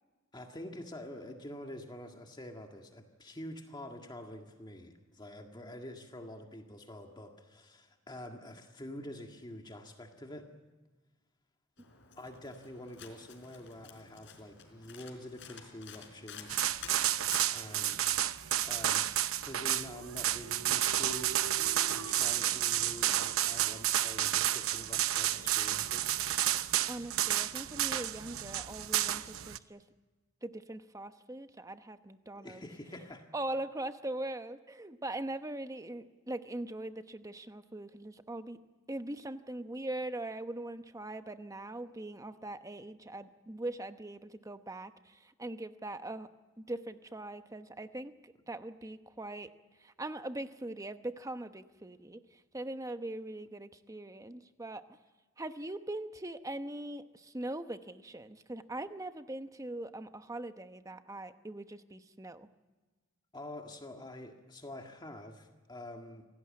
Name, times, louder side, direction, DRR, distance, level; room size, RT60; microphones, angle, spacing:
voice 1, 0.3-10.5 12.2-16.6 17.5-18.1 18.7-19.1 19.4-21.3 21.9-26.1 32.3-33.3 63.3-66.3, left 1 dB, 20° left, 3 dB, 1.8 m, -46 dB
Domestic sounds home sounds, 11.8-17.8, left 7 dB, 60° left, 4.1 m, -51 dB
sound 1, 16.5-29.6, right 12 dB, 90° right, 0.8 m, -31 dB
sound 2, 19.6-23.5, right 3 dB, 55° right, 0.8 m, -48 dB
voice 2, 26.9-29.8 30.4-32.7 33.3-38.6 38.9-46.3 46.6-49.5 49.8-52.2 52.5-54.8 55.4-62.5, right 1 dB, 15° right, 9 dB, 1.0 m, -41 dB
27.0 x 17.5 x 8.6 m, 1.3 s
head